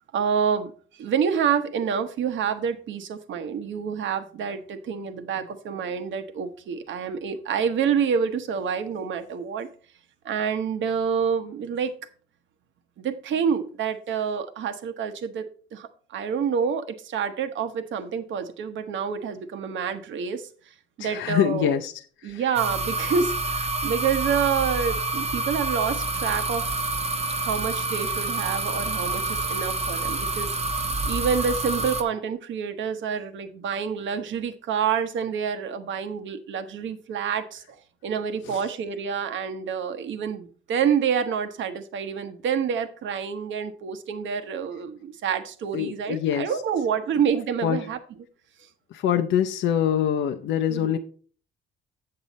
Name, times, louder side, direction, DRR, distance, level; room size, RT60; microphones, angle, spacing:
voice 1, 0.1-0.7 1.0-9.7 10.2-11.9 13.0-20.5 21.0-21.8 22.2-26.8 27.4-30.5 31.0-37.6 38.0-48.0 50.7-50.9, right 7 dB, 70° right, 9 dB, 1.1 m, -27 dB
voice 2, 21.0-21.9 22.2-22.4 38.4-38.6 45.7-46.6 47.6-47.9 48.9-51.0, left 9 dB, 70° left, 6 dB, 0.6 m, -25 dB
sound 1, 22.6-32.0, right 2 dB, 30° right, 1.0 m, -28 dB
7.8 x 7.6 x 4.1 m, 0.43 s
cardioid pair, 90°, 20 cm